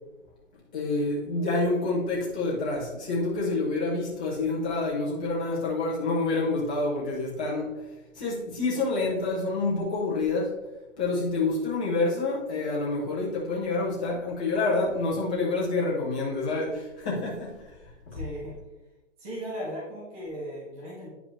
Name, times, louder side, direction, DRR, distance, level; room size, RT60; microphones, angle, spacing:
voice 1, 0.7-7.8 8.1-10.6 11.0-18.2, left 3 dB, 5° left, -6 dB, 0.5 m, -28 dB
voice 2, 18.1-18.6 19.2-21.1, equal, 25° right, -5 dB, 2.3 m, -37 dB
9.8 x 5.0 x 3.2 m, 1.0 s
hypercardioid pair, 160°, 39 cm